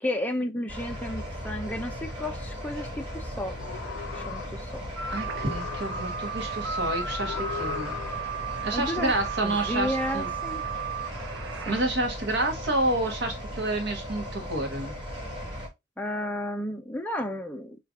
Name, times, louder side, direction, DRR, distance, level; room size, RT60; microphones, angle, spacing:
voice 1, 0.0-3.5 4.1-4.9 8.7-9.1 9.4-10.6 11.7-11.8 16.0-17.8, left 1 dB, 5° left, 0.5 m, -32 dB
sound 1, 0.7-15.7, equal, 25° right, 1.6 m, -37 dB
sound 2, 3.5-4.9 5.2-6.5 7.2-8.5, left 7 dB, 55° left, 0.3 m, -39 dB
sound 3, 5.0-11.8, right 5 dB, 70° right, 0.7 m, -34 dB
voice 2, 5.1-8.0 8.6-10.3 11.7-14.9, right 1 dB, 55° right, 1.0 m, -29 dB
4.9 x 2.5 x 3.5 m
head